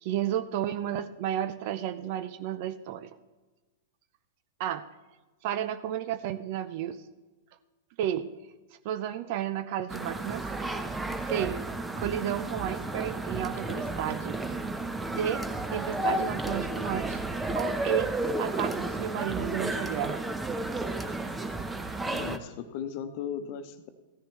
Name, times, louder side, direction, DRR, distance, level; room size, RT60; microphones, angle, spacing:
voice 1, 0.0-3.2 4.6-4.8 5.4-7.0 8.0-8.3 8.8-10.5 11.3-11.6 12.0-14.4 15.1-17.2 17.5-18.1 18.4-20.2, right 10 dB, 50° right, 13 dB, 0.5 m, -32 dB
sound 1, 9.9-22.4, right 2 dB, 10° right, 0.8 m, -32 dB
voice 2, 22.0-23.9, left 8 dB, 50° left, 8 dB, 0.9 m, -37 dB
15.0 x 10.0 x 3.1 m, 1.2 s
hypercardioid pair, 110°, 0 cm